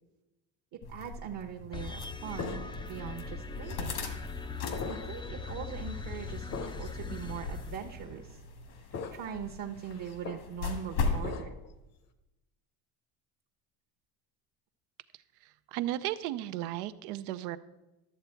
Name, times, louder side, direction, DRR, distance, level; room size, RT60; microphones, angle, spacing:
voice 1, 0.7-4.1 4.9-8.4 8.9-11.5, right 8 dB, 50° right, 2 dB, 1.0 m, -41 dB
sound 1, 0.8-11.3, left 4 dB, 75° left, 1.7 m, -39 dB
sound 2, 1.7-8.3, left 4 dB, 10° left, 0.4 m, -41 dB
sound 3, 2.4-3.0 3.7-3.8 4.7-5.3 5.7-5.9 6.5-7.0 7.7-7.8 8.9-9.4 9.7-10.4 11.2-11.7, left 5 dB, 35° left, 0.8 m, -40 dB
voice 2, 15.4-17.6, right 14 dB, 85° right, 12 dB, 0.6 m, -35 dB
12.0 x 7.0 x 4.4 m, 1.0 s
supercardioid pair, 110°, 44 cm